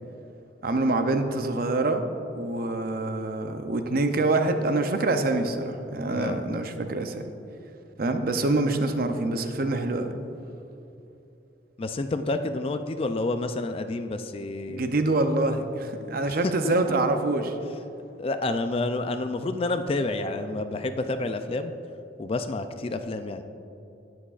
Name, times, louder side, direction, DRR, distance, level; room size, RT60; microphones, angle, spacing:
voice 1, 0.6-2.0 2.3-7.2 8.0-10.2 14.7-17.6, right 2 dB, 50° right, 7 dB, 0.6 m, -25 dB
voice 2, 11.8-14.9 16.6-16.7 18.2-21.7 22.2-23.4, left 2 dB, 30° left, 9 dB, 0.3 m, -29 dB
17.5 x 6.1 x 2.4 m, 2.9 s
head